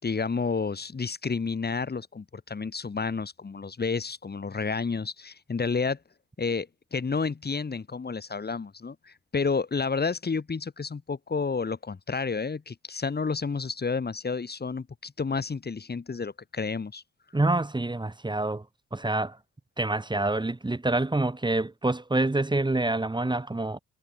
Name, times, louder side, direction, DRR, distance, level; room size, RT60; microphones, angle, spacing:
voice 1, 0.0-6.0 6.4-17.0, left 4 dB, 30° left, 6.8 m, -30 dB
voice 2, 17.3-18.6 18.9-19.4 19.8-23.8, right 2 dB, 15° right, 4.8 m, -26 dB
cardioid pair, 90°, 30 cm